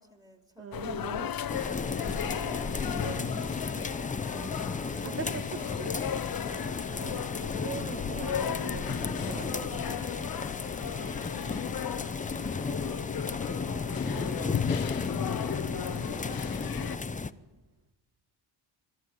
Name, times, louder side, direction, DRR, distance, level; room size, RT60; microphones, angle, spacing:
voice 1, 0.0-2.7 3.6-7.6 16.9-17.6, right 1 dB, 10° right, 2.8 m, -53 dB
voice 2, 0.6-1.4 2.1-2.2 3.0-3.4 5.0-6.1 6.5-10.2 10.5-11.3 13.1-14.6 15.5-16.4, right 6 dB, 30° right, 0.7 m, -44 dB
sound 1, 0.7-17.0, left 9 dB, 45° left, 0.7 m, -36 dB
sound 2, 1.5-17.3, left 4 dB, 15° left, 0.6 m, -34 dB
24.0 x 12.0 x 9.2 m
cardioid pair, 80°, 48 cm